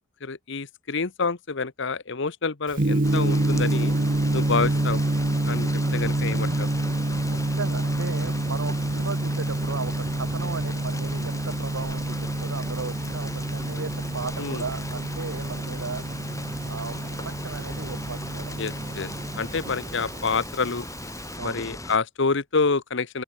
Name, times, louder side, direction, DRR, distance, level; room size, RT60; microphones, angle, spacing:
voice 1, 0.2-3.9 4.3-5.0 5.5-6.7 14.4-14.6 18.6-19.1 19.4-20.8 21.4-23.2, left 4 dB, 65° left, 1.1 m, -27 dB
Gong, 2.7-21.3, right 2 dB, 45° right, 1.0 m, -27 dB
sound 1, 3.0-22.0, left 2 dB, 15° left, 5.5 m, -38 dB
sound 2, 3.7-20.4, right 1 dB, 25° right, 2.3 m, -44 dB
voice 2, 7.3-16.0 16.7-18.5 21.4-21.6, right 4 dB, 85° right, 1.2 m, -36 dB
open air
head